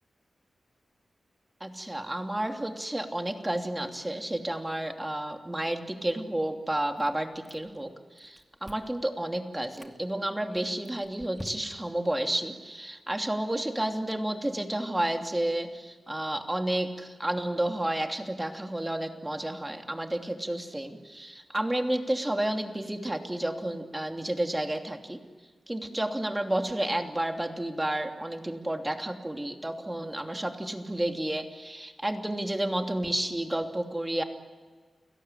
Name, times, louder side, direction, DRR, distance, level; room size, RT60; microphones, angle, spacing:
voice 1, 1.6-7.9 8.2-25.2 25.7-34.2, right 1 dB, 15° right, 4 dB, 3.0 m, -31 dB
Chewing mastication, 7.0-7.9 8.2-9.0 9.5-10.0 10.5-12.0, equal, ahead, 2.6 m, -47 dB
29.5 x 17.0 x 9.9 m, 1.5 s
cardioid pair, 60°, 0 cm